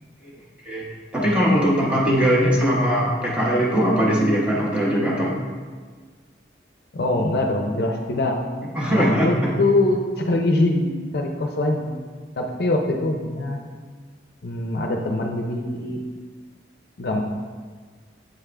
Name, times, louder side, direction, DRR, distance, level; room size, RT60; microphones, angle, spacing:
voice 1, 1.1-5.4 8.7-9.5, equal, 5° right, -5 dB, 0.9 m, -20 dB
voice 2, 6.9-8.4 9.0-12.0 12.4-13.6 14.4-16.0 17.0-17.2, left 2 dB, 55° left, 2 dB, 0.5 m, -23 dB
7.8 x 3.6 x 3.4 m, 1.6 s
head